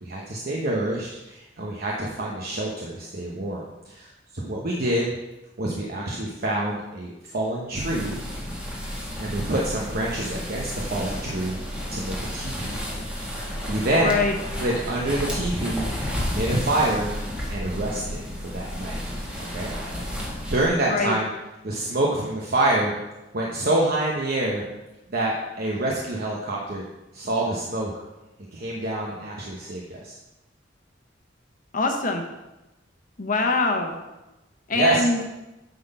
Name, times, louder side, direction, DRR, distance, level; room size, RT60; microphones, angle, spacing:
voice 1, 0.0-5.1 5.6-8.2 9.2-11.6 11.9-12.8 13.4-14.1 14.6-15.8 16.3-17.1 17.5-19.0 19.5-19.7 20.5-21.3 21.6-22.9 23.3-24.6 25.1-26.8 27.1-27.9 28.5-30.2 34.7-35.2, right 1 dB, 55° right, -3 dB, 1.0 m, -26 dB
sound 1, 7.7-20.7, equal, 5° right, 1.6 m, -32 dB
voice 2, 14.0-14.3 20.9-21.2 31.7-32.2 33.2-34.0 34.7-35.2, left 3 dB, 45° left, 4 dB, 1.0 m, -23 dB
9.3 x 4.0 x 5.4 m, 1.0 s
head